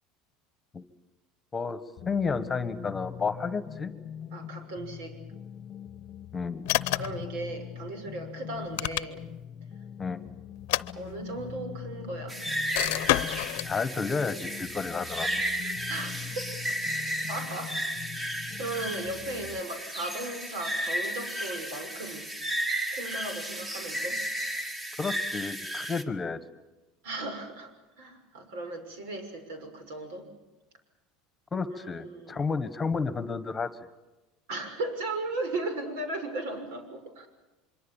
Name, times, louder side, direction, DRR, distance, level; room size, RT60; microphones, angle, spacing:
sound 1, 2.0-19.6, left 9 dB, 35° left, 1.0 m, -43 dB
voice 1, 2.0-3.9 6.3-6.7 10.0-10.2 13.6-15.3 25.0-26.4 31.5-33.7, left 4 dB, 15° left, 12 dB, 1.4 m, -31 dB
voice 2, 4.3-5.2 6.9-9.2 11.0-12.4 15.9-16.1 17.3-17.8 18.6-22.3 22.9-24.2 27.0-30.3 31.7-32.4 34.5-37.3, right 2 dB, 85° right, 7 dB, 6.5 m, -36 dB
sound 2, 6.7-7.3 8.5-9.4 10.6-11.5 12.7-13.7, left 19 dB, 80° left, 0.8 m, -29 dB
sound 3, 12.3-26.0, right 1 dB, 15° right, 1.7 m, -34 dB
25.0 x 23.5 x 7.3 m, 1.1 s
supercardioid pair, 140°, 0 cm